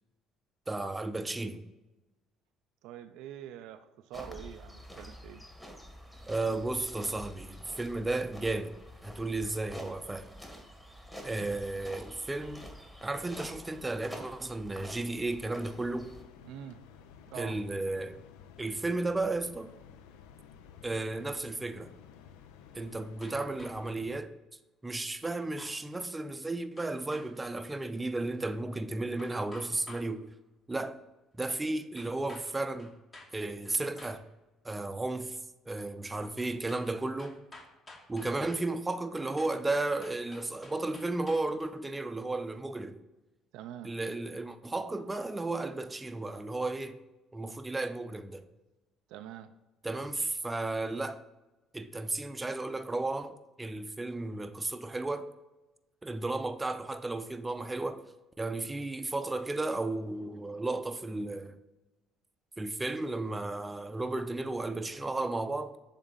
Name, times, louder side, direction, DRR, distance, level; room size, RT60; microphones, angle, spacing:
voice 1, 0.7-1.6 6.3-8.7 9.0-10.3 11.2-12.7 13.0-16.1 17.4-18.2 18.6-19.7 20.8-21.9 22.7-24.3 24.8-30.3 30.7-31.0 31.4-32.9 33.3-34.2 34.6-35.4 35.7-37.4 38.1-43.0 43.8-47.0 47.3-48.4 49.8-51.2 51.7-55.3 56.0-58.0 58.4-61.6 62.6-65.7, right 2 dB, 20° right, 0.5 m, -34 dB
voice 2, 2.8-5.5 16.4-16.8 17.3-17.6 43.5-43.9 49.1-49.5, right 11 dB, 70° right, 0.3 m, -45 dB
sound 1, 4.1-16.2, equal, 10° left, 1.5 m, -48 dB
sound 2, 15.6-24.2, left 8 dB, 75° left, 0.4 m, -54 dB
sound 3, 23.2-24.0 25.2-25.8 26.8-27.3 29.2-30.1 32.0-32.5 32.8-33.3 33.6-34.2 36.4-36.9 37.2-38.7 39.4-41.6, left 2 dB, 35° left, 1.7 m, -51 dB
7.1 x 3.6 x 3.9 m
hypercardioid pair, 55°, 0 cm